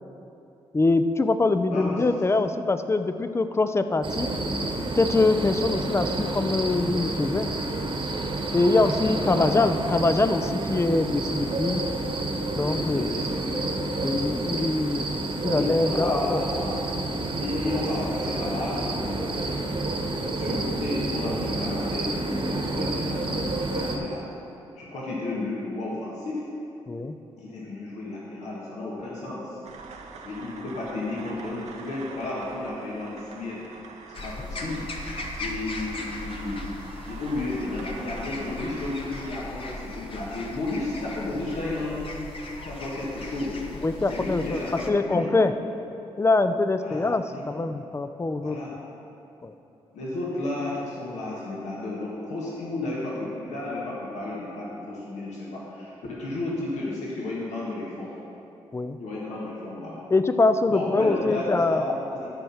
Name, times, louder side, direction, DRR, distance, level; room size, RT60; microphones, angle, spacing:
voice 1, 0.7-4.3 5.0-7.5 8.5-11.8 12.6-13.2 14.0-15.1 15.4-16.4 26.9-27.1 43.8-44.6 44.9-45.5 46.2-48.6 49.4-49.5 58.7-59.0 60.1-61.8, left 3 dB, 20° left, 10 dB, 0.5 m, -23 dB
sound 1, 4.0-24.0, right 2 dB, 45° right, 1.3 m, -29 dB
voice 2, 8.7-9.8 12.6-14.0 15.5-16.8 17.4-19.7 20.2-24.3 24.7-26.5 27.4-29.6 30.2-33.6 34.1-34.9 35.4-36.7 37.1-43.6 43.9-45.6 46.8-47.4 48.4-48.7 49.9-58.1 59.0-60.0 60.7-62.3, left 2 dB, 75° left, -5 dB, 1.6 m, -33 dB
sound 2, 29.6-39.3, right 4 dB, 65° right, 0.9 m, -45 dB
sound 3, 34.1-44.9, left 2 dB, 50° left, 1.1 m, -38 dB
12.5 x 4.4 x 5.7 m, 2.9 s
supercardioid pair, 50°, 12 cm